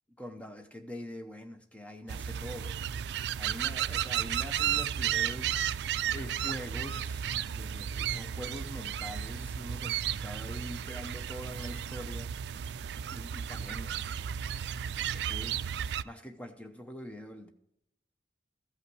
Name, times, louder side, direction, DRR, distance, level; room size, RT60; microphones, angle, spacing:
voice 1, 0.2-2.8 3.4-5.6 6.1-13.9 15.1-15.6 16.0-17.5, equal, 10° left, 0.8 m, -44 dB
sound 1, 2.1-16.0, right 9 dB, 75° right, 0.3 m, -33 dB
14.5 x 5.7 x 4.7 m
head